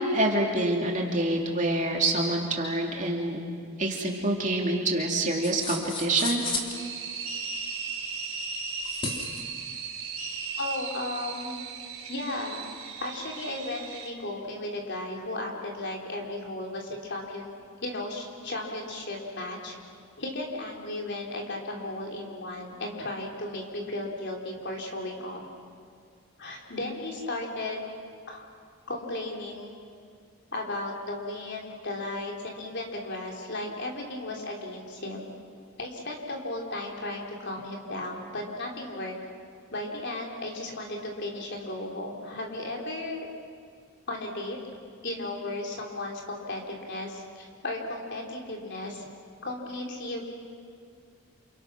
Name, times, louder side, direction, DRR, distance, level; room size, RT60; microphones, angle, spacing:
voice 1, 0.0-3.4 3.8-6.4, right 1 dB, 35° right, 0 dB, 3.0 m, -26 dB
sound 1, 5.4-6.8 8.8-9.4, left 3 dB, 25° left, 2.8 m, -33 dB
sound 2, 6.7-14.1, right 5 dB, 70° right, 3.7 m, -37 dB
voice 2, 10.6-11.6 12.1-12.7 13.0-19.8 20.2-25.4 26.4-27.8 28.3-28.4 28.9-29.8 30.5-35.3 35.8-39.1 39.7-43.3 44.1-44.6 45.0-49.1 49.4-50.2, left 2 dB, 50° left, 0 dB, 3.8 m, -35 dB
29.0 x 28.5 x 6.3 m, 2.2 s
head